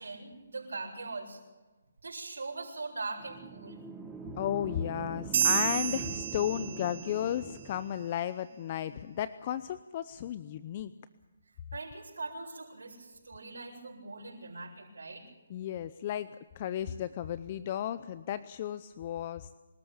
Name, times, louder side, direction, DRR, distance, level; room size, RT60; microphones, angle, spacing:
voice 1, 0.0-1.4 2.0-3.8 11.7-15.2, right 3 dB, 85° right, -5 dB, 6.6 m, -41 dB
sound 1, 3.2-8.1, right 4 dB, 10° right, 1.4 m, -44 dB
voice 2, 4.4-10.9 15.5-19.5, left 10 dB, 35° left, 14 dB, 0.7 m, -34 dB
sound 2, 5.3-7.2, right 9 dB, 45° right, 1.0 m, -30 dB
25.0 x 13.5 x 8.8 m, 1.2 s
hypercardioid pair, 155°, 0 cm